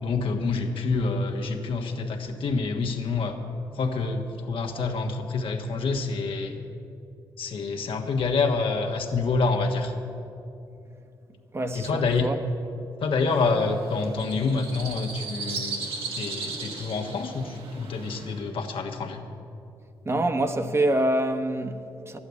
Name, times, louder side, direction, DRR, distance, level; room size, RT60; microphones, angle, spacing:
voice 1, 0.0-3.4 3.7-6.6 7.4-9.9 11.7-12.3 13.0-15.9 16.2-19.2, left 4 dB, 70° left, 1.4 m, -27 dB
voice 2, 11.5-12.4 20.0-22.2, right 1 dB, 30° right, 1.0 m, -26 dB
sound 1, 13.3-18.4, right 4 dB, 80° right, 2.0 m, -37 dB
11.5 x 8.6 x 9.6 m
cardioid pair, 70°, 9 cm